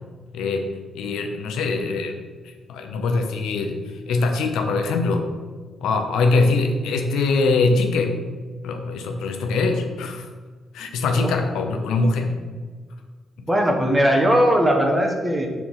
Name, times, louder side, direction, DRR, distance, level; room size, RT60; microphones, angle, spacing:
voice 1, 0.3-0.7 0.9-2.2 2.4-5.3 5.8-8.2 8.6-10.3 10.7-12.4, left 3 dB, 90° left, 5 dB, 0.6 m, -22 dB
voice 2, 13.5-15.5, equal, 15° right, 1 dB, 1.2 m, -18 dB
4.6 x 4.5 x 5.6 m, 1.5 s
cardioid pair, 80°, 0 cm